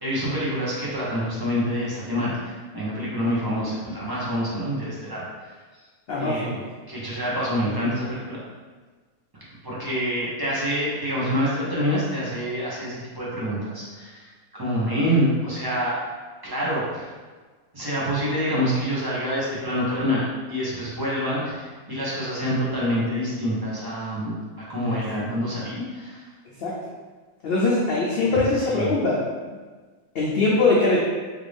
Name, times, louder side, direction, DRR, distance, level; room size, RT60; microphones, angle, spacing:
voice 1, 0.0-5.5 6.2-6.5 6.9-8.4 9.6-16.0 16.4-17.1 17.7-24.3 24.7-26.2 28.3-28.9, equal, 25° right, -8 dB, 0.5 m, -26 dB
voice 2, 6.1-6.6 25.1-25.2 26.6-26.8 27.4-29.2 30.1-31.0, left 3 dB, 75° left, -5 dB, 0.5 m, -22 dB
3.3 x 2.5 x 3.4 m, 1.4 s
omnidirectional pair, 1.6 m